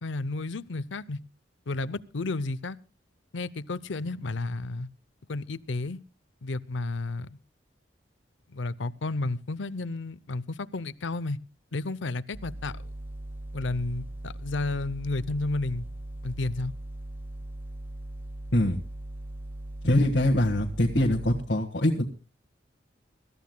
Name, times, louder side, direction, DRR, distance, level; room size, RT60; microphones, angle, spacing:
voice 1, 0.0-1.2 1.7-2.8 3.3-4.9 5.3-6.0 6.4-7.4 8.5-11.4 11.7-12.8 13.5-15.9 16.2-16.7, left 2 dB, 85° left, 0.7 m, -32 dB
sound 1, 12.3-21.4, right 1 dB, 10° right, 1.0 m, -39 dB
voice 2, 19.8-22.0, left 1 dB, 65° left, 1.7 m, -23 dB
26.0 x 14.0 x 2.3 m
head